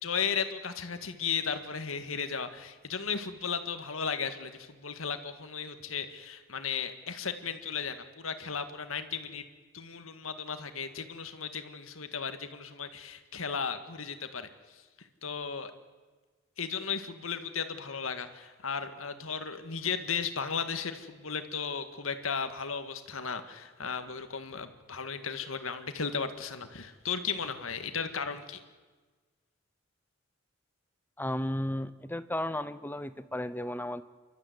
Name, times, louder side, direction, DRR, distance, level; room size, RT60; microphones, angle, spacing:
voice 1, 0.0-9.4 9.7-14.5 15.2-15.7 16.6-28.6, left 6 dB, 85° left, 9 dB, 1.9 m, -35 dB
voice 2, 31.2-34.0, left 1 dB, 10° left, 13 dB, 0.9 m, -34 dB
29.0 x 13.5 x 9.7 m, 1.4 s
head